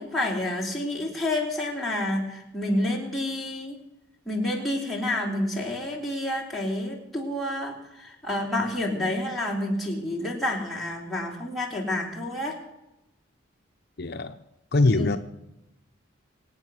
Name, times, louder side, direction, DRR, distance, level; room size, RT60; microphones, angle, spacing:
voice 1, 0.0-3.8 4.2-12.5 14.9-15.1, left 1 dB, ahead, -4 dB, 3.6 m, -29 dB
voice 2, 14.0-14.4 14.7-15.2, left 2 dB, 55° left, 7 dB, 0.7 m, -22 dB
25.0 x 8.8 x 6.3 m, 0.91 s
head